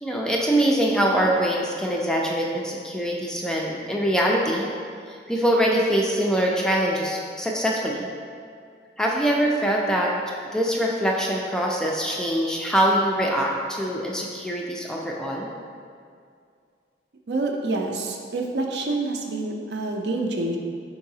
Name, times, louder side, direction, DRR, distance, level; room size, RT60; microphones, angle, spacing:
voice 1, 0.0-4.7 5.3-8.1 9.0-10.1 10.5-15.5, equal, 5° left, -2 dB, 0.3 m, -23 dB
voice 2, 17.3-20.6, right 2 dB, 70° right, 2 dB, 0.5 m, -27 dB
4.6 x 3.9 x 2.7 m, 2.2 s
head